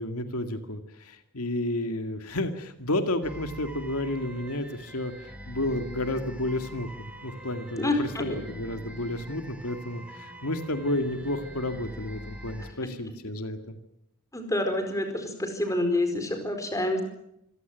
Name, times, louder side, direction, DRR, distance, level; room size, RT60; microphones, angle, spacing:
voice 1, 0.0-13.8, left 1 dB, 85° left, 7 dB, 2.2 m, -31 dB
sound 1, 3.2-12.7, equal, 5° right, 3.8 m, -44 dB
voice 2, 7.8-8.3 12.8-12.9 14.3-17.0, left 1 dB, 15° left, 6 dB, 4.6 m, -28 dB
26.5 x 16.5 x 9.2 m, 0.79 s
head